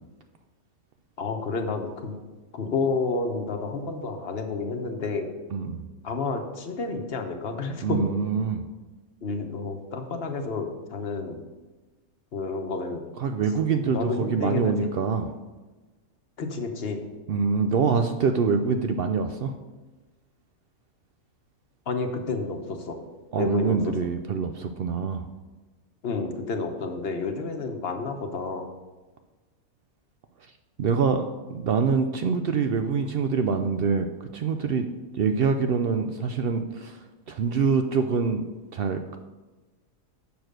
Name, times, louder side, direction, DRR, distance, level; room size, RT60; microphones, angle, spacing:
voice 1, 1.2-2.2 2.5-5.3 6.0-8.0 9.2-11.4 12.3-13.1 13.8-14.9 16.4-17.0 21.9-23.0 23.4-24.1 26.0-28.6, left 4 dB, 45° left, 5 dB, 1.1 m, -30 dB
voice 2, 7.8-8.6 13.2-15.3 17.3-19.5 23.3-25.3 30.8-34.1 34.3-34.9 35.1-37.0 37.3-38.4 38.7-39.2, right 5 dB, 75° right, 7 dB, 0.5 m, -25 dB
6.9 x 6.1 x 6.5 m, 1.2 s
omnidirectional pair, 1.5 m